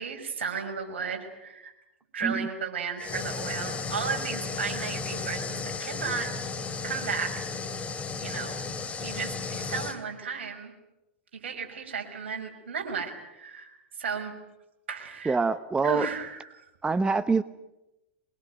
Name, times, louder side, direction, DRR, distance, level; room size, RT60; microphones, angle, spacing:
voice 1, 0.0-1.7 2.1-6.3 6.8-7.5 8.2-8.6 9.0-10.7 11.4-13.7 14.0-14.3 14.9-15.4 15.8-16.4, right 6 dB, 75° right, 4 dB, 5.6 m, -34 dB
sound 1, 3.0-10.0, left 4 dB, 20° left, 2.9 m, -34 dB
voice 2, 15.3-16.1 16.8-17.4, right 4 dB, 15° right, 14 dB, 0.9 m, -25 dB
24.5 x 21.5 x 9.2 m, 0.94 s
hypercardioid pair, 100°, 6 cm